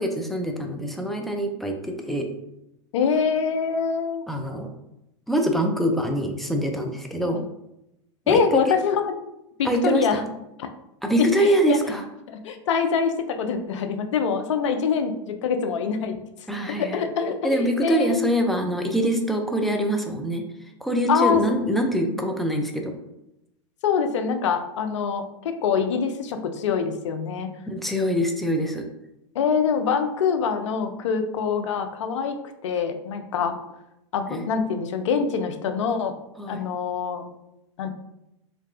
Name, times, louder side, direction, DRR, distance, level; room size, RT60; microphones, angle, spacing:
voice 1, 0.0-2.3 4.3-4.7 5.3-7.4 8.3-8.6 9.6-10.3 11.0-12.0 16.5-17.0 17.4-20.4 20.8-22.9 27.7-28.8 34.3-34.4 36.4-36.6, right 1 dB, ahead, 2 dB, 0.4 m, -24 dB
voice 2, 2.9-4.2 7.2-7.4 8.3-9.0 9.6-10.2 10.6-10.7 11.2-11.8 12.3-16.2 16.7-18.3 21.1-21.4 23.8-27.5 29.4-33.5 34.1-36.2 36.5-37.3 37.8-37.9, left 6 dB, 70° left, 6 dB, 0.4 m, -25 dB
2.9 x 2.3 x 2.5 m, 0.85 s
hypercardioid pair, 90°, 16 cm